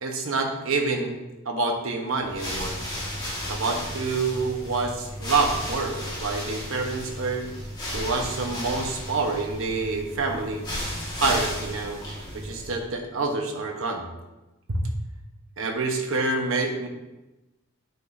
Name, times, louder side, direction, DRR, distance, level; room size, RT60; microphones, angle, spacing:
voice 1, 0.0-2.8 3.5-7.5 7.9-10.6 11.2-12.0 12.3-14.1 14.7-14.9 15.6-16.9, right 3 dB, 65° right, 2 dB, 1.2 m, -27 dB
sound 1, 2.2-12.9, equal, 20° left, 1.9 m, -34 dB
9.0 x 6.1 x 2.7 m, 1.0 s
head